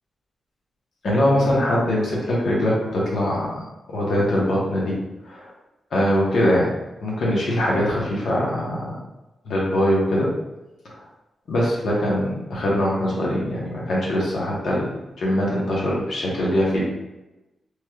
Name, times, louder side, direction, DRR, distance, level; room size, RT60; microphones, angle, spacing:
voice 1, 1.0-3.6 3.9-4.9 5.2-5.5 5.9-6.7 7.0-8.9 9.4-10.3 11.5-14.9 15.2-16.8, left 1 dB, 75° left, -4 dB, 0.9 m, -22 dB
3.3 x 3.0 x 2.3 m, 1.0 s
wide cardioid pair, 155°, 0 cm